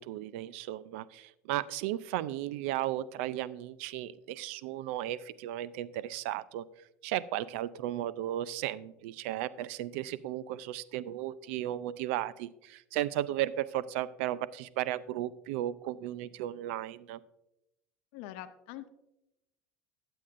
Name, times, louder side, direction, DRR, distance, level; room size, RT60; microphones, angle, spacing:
voice 1, 0.0-6.6 7.0-17.2, right 13 dB, 80° right, 18 dB, 0.4 m, -35 dB
voice 2, 18.1-18.9, left 13 dB, 75° left, 9 dB, 0.5 m, -44 dB
12.0 x 7.7 x 2.5 m, 0.87 s
supercardioid pair, 100°, 6 cm